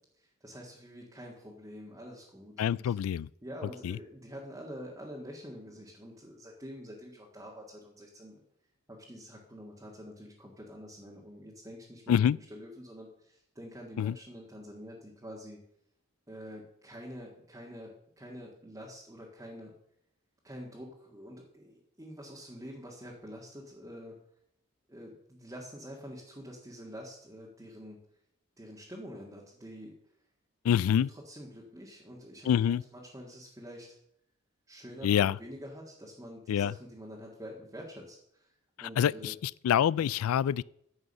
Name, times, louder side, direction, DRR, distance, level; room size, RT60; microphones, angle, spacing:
voice 1, 0.4-2.9 3.4-8.4 8.9-12.2 12.5-15.6 16.3-19.7 20.4-24.2 24.9-28.0 28.6-30.0 31.3-34.0 34.7-38.5 38.8-39.3 39.9-40.1, equal, 15° right, 1.7 m, -46 dB
voice 2, 2.6-3.3 3.8-4.0 12.1-12.4 14.0-14.2 30.6-31.1 32.4-32.8 35.0-35.4 36.5-36.7 38.8-40.6, left 9 dB, 80° left, 0.3 m, -26 dB
9.7 x 7.9 x 6.5 m
head